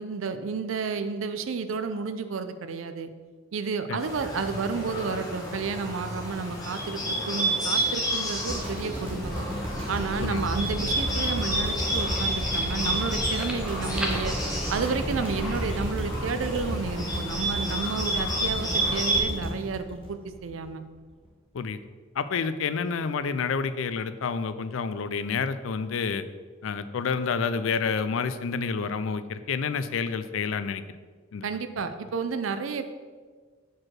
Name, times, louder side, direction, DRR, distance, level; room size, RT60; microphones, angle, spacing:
voice 1, 0.0-3.1 3.5-9.5 9.9-14.3 14.7-20.8 31.4-32.9, right 5 dB, 80° right, 10 dB, 0.5 m, -31 dB
Bird, 4.0-19.2, right 1 dB, 20° left, 2.0 m, -30 dB
sound 1, 8.5-20.7 21.2-21.3, equal, 30° right, 1.1 m, -34 dB
sound 2, 10.4-15.9, equal, 5° right, 0.9 m, -34 dB
voice 2, 22.2-26.2 26.6-30.8 31.3-31.5, left 5 dB, 75° left, 12 dB, 0.4 m, -29 dB
4.7 x 4.6 x 6.1 m, 1.5 s
head